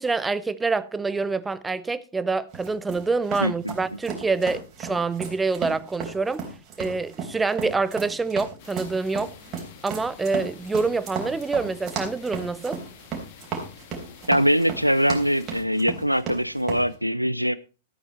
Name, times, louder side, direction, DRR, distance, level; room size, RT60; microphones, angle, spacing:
voice 1, 0.0-6.4 6.8-9.3 9.8-12.8, right 4 dB, 10° right, 0.7 m, -26 dB
sound 1, 2.5-16.9, right 5 dB, 30° right, 3.7 m, -35 dB
voice 2, 3.4-3.7 14.3-17.6, equal, 90° right, 0.4 m, -22 dB
sound 2, 8.6-15.6, left 7 dB, 45° left, 2.1 m, -49 dB
13.5 x 9.0 x 4.3 m
figure-of-eight pair, 100°, 0 cm